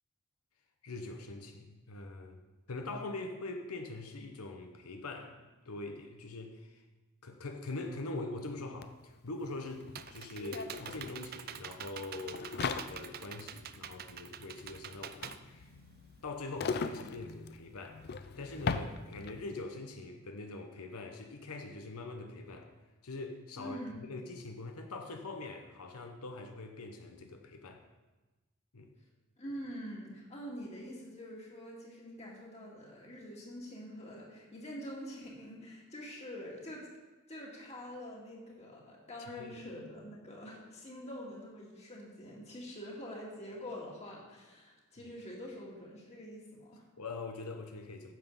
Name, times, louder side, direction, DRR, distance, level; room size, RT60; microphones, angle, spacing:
voice 1, 0.8-2.4 2.7-6.8 7.2-15.7 16.2-18.0 18.4-22.7 23.0-27.9 28.7-28.9 39.4-39.5 45.0-45.1 47.0-48.1, left 2 dB, 80° left, 4 dB, 0.9 m, -43 dB
sound 1, 8.8-8.9 9.1-19.6, left 5 dB, 45° left, 0.4 m, -40 dB
Computer keyboard, 9.4-16.3, right 9 dB, 45° right, 0.4 m, -47 dB
voice 2, 23.6-23.9 29.4-36.9 37.3-46.9, equal, 30° left, -3 dB, 2.2 m, -45 dB
9.1 x 7.2 x 5.5 m, 1.2 s
head